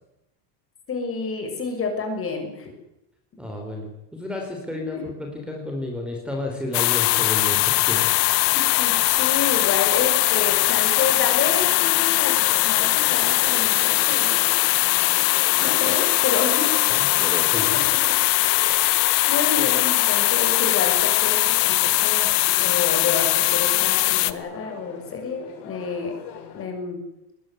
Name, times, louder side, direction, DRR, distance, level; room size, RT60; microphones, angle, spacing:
voice 1, 0.9-2.7 4.7-5.0 8.5-12.3 12.6-14.6 15.6-16.7 18.1-18.2 19.3-22.3 22.6-26.1 26.5-27.0, left 5 dB, 25° left, 4 dB, 6.9 m, -29 dB
voice 2, 3.4-8.0 16.9-17.8, left 1 dB, ahead, 1 dB, 4.7 m, -32 dB
sound 1, 6.7-24.3, left 21 dB, 75° left, 1.5 m, -20 dB
sound 2, 10.2-26.7, left 8 dB, 55° left, 6.3 m, -41 dB
22.0 x 21.0 x 9.7 m, 0.89 s
cardioid pair, 155°, 48 cm